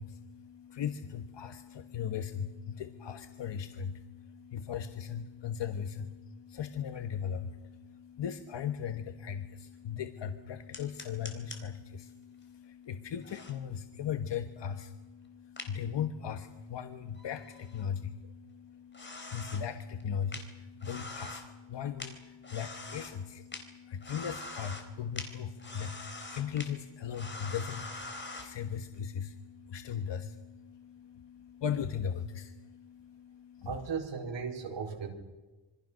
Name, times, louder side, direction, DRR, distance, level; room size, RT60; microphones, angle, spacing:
voice 1, 0.0-33.7, left 8 dB, 80° left, 8 dB, 1.4 m, -38 dB
sound 1, 10.7-11.6 13.2-13.5 15.6-15.7 17.1-17.8 18.9-19.6 20.0-20.1 20.3-20.4 20.8-21.5 22.0-23.1 23.5-23.6 24.0-24.9 25.2-25.3 25.6-26.7 27.1-28.5, left 2 dB, 25° left, 3.8 m, -43 dB
voice 2, 33.6-35.1, right 6 dB, 85° right, 1 dB, 4.8 m, -36 dB
27.0 x 24.0 x 6.5 m, 1.2 s
wide cardioid pair, 140°, 43 cm